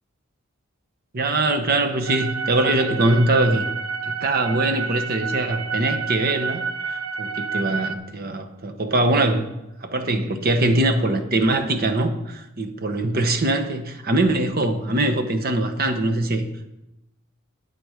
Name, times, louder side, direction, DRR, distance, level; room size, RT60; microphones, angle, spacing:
voice 1, 1.1-3.6 4.0-9.5 9.8-16.5, right 2 dB, 45° right, 7 dB, 1.0 m, -22 dB
sound 1, 2.1-8.0, right 5 dB, 85° right, 0.6 m, -29 dB
9.3 x 8.8 x 5.0 m, 0.93 s
head